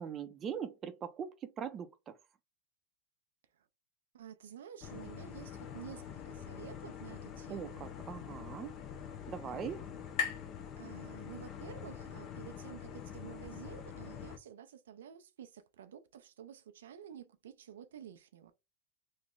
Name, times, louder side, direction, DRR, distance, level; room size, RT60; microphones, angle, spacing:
voice 1, 0.0-2.1 7.5-8.7 9.3-9.8, right 7 dB, 30° right, 0.5 m, -41 dB
voice 2, 4.1-7.9 10.8-18.5, right 9 dB, 90° right, 0.4 m, -51 dB
sound 1, 4.8-14.4, left 8 dB, 35° left, 0.5 m, -46 dB
sound 2, 7.8-11.6, left 7 dB, 55° left, 1.4 m, -43 dB
3.1 x 2.1 x 3.6 m
supercardioid pair, 130°, 0 cm